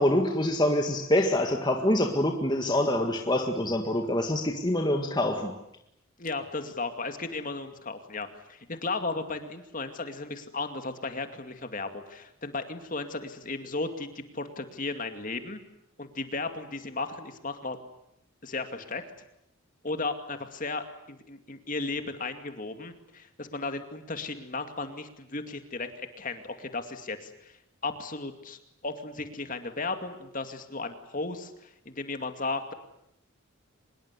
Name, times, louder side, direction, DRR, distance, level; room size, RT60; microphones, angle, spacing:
voice 1, 0.0-5.5, left 1 dB, 20° left, 3 dB, 1.8 m, -25 dB
voice 2, 6.2-15.6 16.0-17.8 18.4-19.0 19.8-27.6 27.8-32.7, left 3 dB, 40° left, 7 dB, 2.4 m, -35 dB
25.0 x 21.5 x 9.8 m, 0.80 s
head